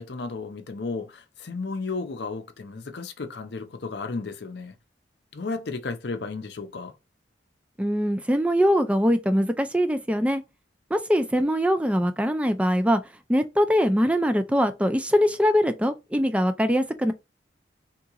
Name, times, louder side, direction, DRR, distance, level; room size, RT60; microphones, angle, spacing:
voice 1, 0.0-4.7 5.3-6.9, left 3 dB, 65° left, 0.6 m, -33 dB
voice 2, 7.8-10.4 10.9-13.0 13.3-17.1, equal, 5° right, 0.4 m, -22 dB
3.7 x 2.9 x 2.4 m
head